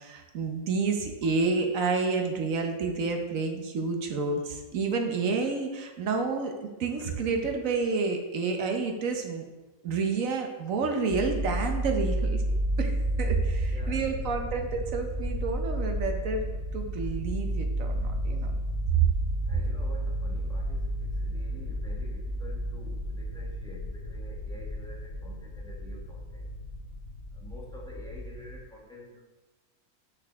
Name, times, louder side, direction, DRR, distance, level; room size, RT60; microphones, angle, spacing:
voice 1, 0.0-9.4 9.8-12.4 12.8-16.5 16.7-18.5 18.9-19.1, right 4 dB, 65° right, 4 dB, 1.2 m, -29 dB
sound 1, 11.1-28.5, equal, 55° left, 1.9 m, -32 dB
voice 2, 13.7-14.2 19.5-26.5 27.4-29.2, left 1 dB, 5° left, -4 dB, 1.3 m, -48 dB
6.3 x 5.5 x 3.5 m, 1.2 s
omnidirectional pair, 1.6 m